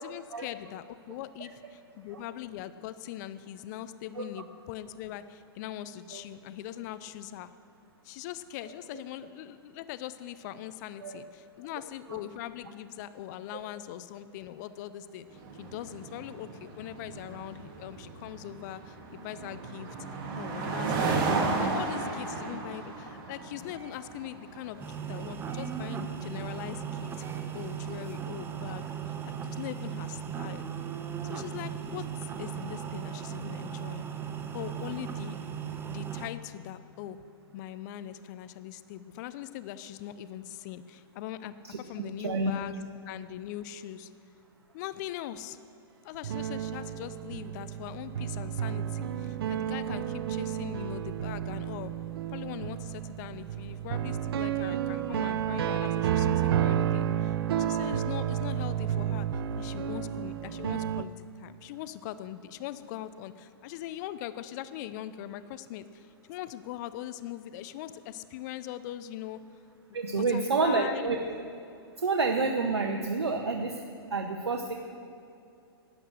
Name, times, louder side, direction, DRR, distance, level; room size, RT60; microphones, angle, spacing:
voice 1, 0.0-7.5 8.0-19.9 20.4-27.2 27.5-30.7 31.3-32.1 32.4-34.1 34.5-35.4 35.8-37.2 37.5-44.1 44.7-45.6 46.0-51.9 52.3-69.4 70.1-71.2, left 12 dB, 45° left, 14 dB, 0.5 m, -41 dB
sound 1, 15.3-28.8, right 3 dB, 40° right, 2.2 m, -35 dB
sound 2, 24.8-36.3, right 8 dB, 15° right, 0.8 m, -37 dB
voice 2, 41.6-42.5 69.9-71.2 72.0-73.8 74.1-74.7, right 4 dB, 90° right, 3 dB, 0.9 m, -29 dB
sound 3, 46.2-61.0, right 10 dB, 65° right, 0.5 m, -31 dB
12.0 x 8.7 x 6.5 m, 2.6 s
hypercardioid pair, 115°, 13 cm